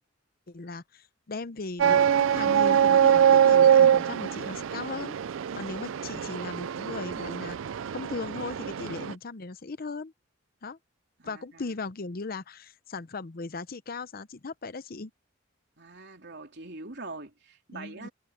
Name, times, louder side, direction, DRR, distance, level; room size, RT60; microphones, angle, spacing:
voice 1, 0.5-5.2 5.6-7.6 7.9-10.1 10.6-10.8 11.2-15.1 17.7-18.1, left 3 dB, 45° left, 0.7 m, -38 dB
sound 1, 1.8-9.1, right 9 dB, 75° right, 0.4 m, -23 dB
voice 2, 11.2-11.7 15.8-18.1, right 3 dB, 55° right, 3.6 m, -43 dB
head